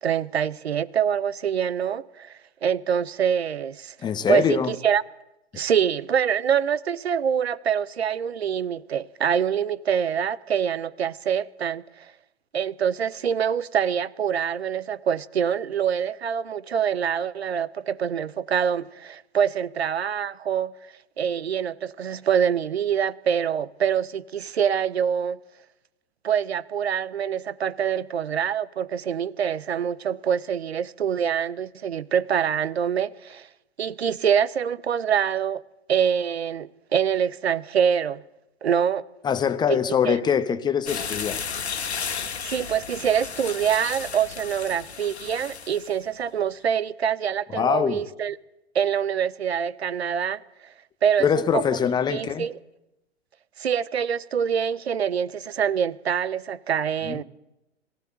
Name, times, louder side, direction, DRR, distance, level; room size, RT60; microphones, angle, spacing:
voice 1, 0.0-2.3 2.6-3.9 4.3-5.0 5.5-12.1 12.5-20.7 21.2-25.4 26.2-33.5 33.8-35.6 35.9-38.2 38.6-39.0 39.7-40.2 42.4-48.4 48.7-50.4 51.0-51.3 51.5-51.6 52.1-52.6 53.6-57.2, right 8 dB, 65° right, 0.8 m, -25 dB
voice 2, 4.0-4.7 39.2-41.4 47.5-48.0 51.2-52.5 57.0-57.2, left 7 dB, 10° left, 0.8 m, -23 dB
sound 1, 40.9-46.0, left 6 dB, 70° left, 1.7 m, -33 dB
22.0 x 16.0 x 8.8 m
figure-of-eight pair, 105°, 34 cm